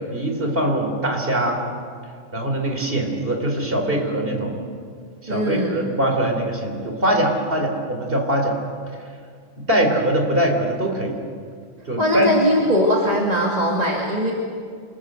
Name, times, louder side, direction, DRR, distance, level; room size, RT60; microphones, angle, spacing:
voice 1, 0.1-1.6 2.3-4.5 5.2-8.6 9.6-11.2 11.9-12.3, right 1 dB, 50° right, 3 dB, 4.1 m, -22 dB
voice 2, 5.3-5.8 12.0-14.3, equal, 30° right, -2 dB, 2.8 m, -20 dB
28.0 x 21.0 x 8.1 m, 2.2 s
omnidirectional pair, 1.3 m